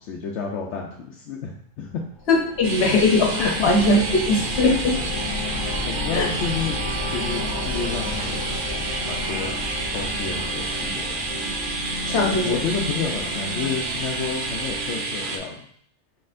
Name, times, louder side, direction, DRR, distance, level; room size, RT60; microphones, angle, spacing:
voice 1, 0.0-2.0 2.9-3.0 3.4-3.7 5.9-6.8 7.1-8.5 9.1-9.5 9.9-11.1 12.2-15.7, left 6 dB, 85° left, 0 dB, 0.9 m, -30 dB
sound 1, 2.1-14.9, left 3 dB, 45° left, 0.8 m, -33 dB
voice 2, 2.3-5.0 6.1-6.3 12.1-12.6, left 2 dB, 65° left, 1 dB, 1.2 m, -20 dB
sound 2, 2.6-15.4, right 3 dB, 55° right, 0.8 m, -30 dB
sound 3, 2.6-15.6, right 1 dB, 75° right, 1.0 m, -37 dB
4.7 x 4.2 x 2.5 m, 0.62 s
omnidirectional pair, 1.2 m